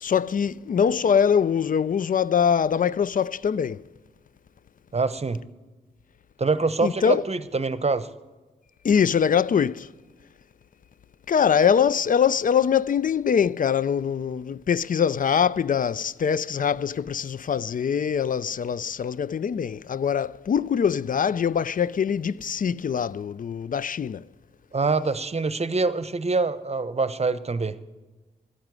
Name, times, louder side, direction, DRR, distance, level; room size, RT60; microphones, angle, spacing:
voice 1, 0.0-3.8 6.8-7.2 8.8-9.9 11.3-24.2, left 7 dB, 55° left, 0.4 m, -23 dB
voice 2, 4.9-5.4 6.4-8.1 24.7-27.8, right 4 dB, 40° right, 0.9 m, -25 dB
12.0 x 8.9 x 9.7 m
supercardioid pair, 40°, 17 cm